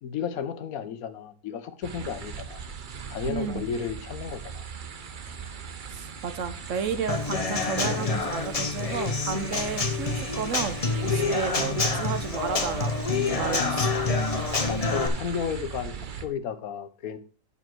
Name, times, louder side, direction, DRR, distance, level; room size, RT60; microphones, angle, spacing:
voice 1, 0.0-2.6 3.1-4.6 14.7-15.9 16.2-17.2, left 7 dB, 80° left, 11 dB, 1.3 m, -33 dB
sound 1, 1.8-16.3, right 6 dB, 45° right, 0.8 m, -38 dB
voice 2, 3.3-3.7 5.9-10.7 11.0-13.9, right 6 dB, 65° right, 10 dB, 1.3 m, -32 dB
Human voice / Acoustic guitar / Drum, 7.1-15.1, left 4 dB, 30° left, 0.9 m, -27 dB
8.7 x 6.8 x 4.5 m, 0.38 s
omnidirectional pair, 1.5 m